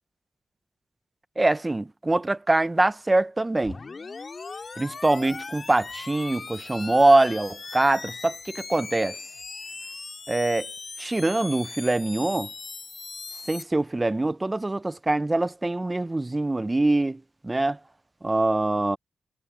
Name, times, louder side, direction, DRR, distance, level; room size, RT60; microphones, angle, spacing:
voice 1, 1.4-3.8 4.8-9.2 10.3-10.7 11.0-12.5 13.5-17.8 18.2-19.0, right 2 dB, 25° right, 0.9 m, -23 dB
sound 1, 3.6-13.6, left 4 dB, 45° left, 5.2 m, -39 dB
supercardioid pair, 45°, 0 cm